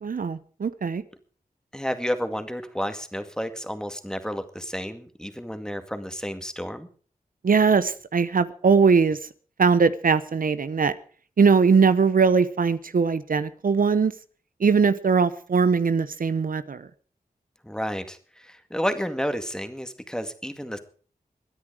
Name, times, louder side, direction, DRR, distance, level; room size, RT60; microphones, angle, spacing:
voice 1, 0.0-1.0 7.4-9.2 9.6-10.9 11.4-14.1 14.6-16.9, right 5 dB, 70° right, 14 dB, 0.8 m, -20 dB
voice 2, 1.7-6.9 17.6-20.8, equal, 5° left, 8 dB, 2.1 m, -31 dB
22.5 x 9.9 x 4.9 m, 0.42 s
wide cardioid pair, 65°, 15 cm